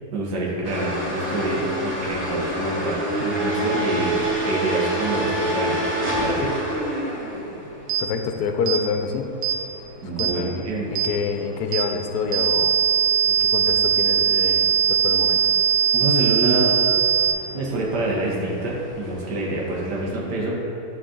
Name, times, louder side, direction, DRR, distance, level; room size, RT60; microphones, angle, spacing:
voice 1, 0.1-6.5 10.0-10.9 15.9-16.7 17.5-20.6, right 2 dB, 90° right, -4 dB, 1.8 m, -27 dB
sound 1, 0.6-20.1, equal, 45° right, 1.7 m, -30 dB
sound 2, 7.9-8.1 8.7-8.8 9.4-9.6 10.2-10.4 11.0-11.1 11.7-11.9 12.3-17.3, right 8 dB, 65° right, 0.9 m, -20 dB
voice 2, 8.0-9.3 10.2-10.5 10.9-12.8 13.3-15.4, left 5 dB, 75° left, 5 dB, 1.1 m, -27 dB
11.0 x 4.2 x 3.8 m, 2.7 s
omnidirectional pair, 1.7 m